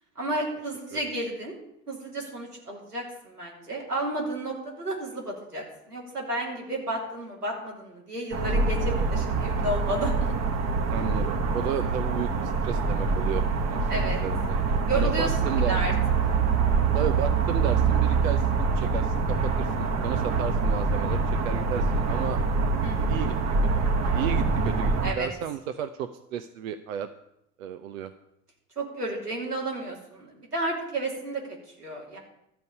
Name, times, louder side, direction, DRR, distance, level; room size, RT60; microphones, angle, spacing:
voice 1, 0.1-1.5 1.9-10.3 13.9-14.2 14.9-15.9 22.8-23.2 25.0-25.3 28.8-32.2, right 1 dB, 90° right, -2 dB, 3.1 m, -32 dB
sound 1, 8.3-25.1, right 4 dB, 35° right, 1.3 m, -25 dB
voice 2, 10.9-14.6 14.9-15.8 16.9-22.4 23.1-23.3 23.8-27.1 27.6-28.1, right 9 dB, 60° right, 10 dB, 0.8 m, -33 dB
13.0 x 5.3 x 8.6 m, 0.81 s
figure-of-eight pair, 75°, 45 cm